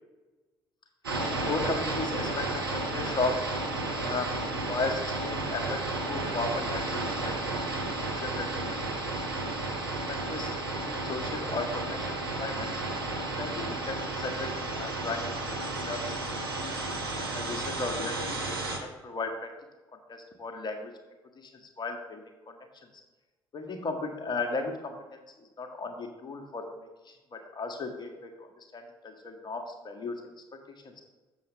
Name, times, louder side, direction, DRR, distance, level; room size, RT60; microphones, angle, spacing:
sound 1, 1.0-18.8, right 2 dB, 90° right, 0.8 m, -33 dB
voice 1, 1.3-3.4 3.9-4.3 4.7-7.5 8.0-8.5 9.0-9.2 10.1-10.6 10.9-12.7 13.2-16.7 17.1-19.5 20.1-20.9 21.8-22.5 23.5-24.9 25.6-26.9 27.3-30.2 30.8-31.0, left 3 dB, 40° left, 4 dB, 1.4 m, -35 dB
7.0 x 6.9 x 3.5 m, 1.2 s
figure-of-eight pair, 50°, 12 cm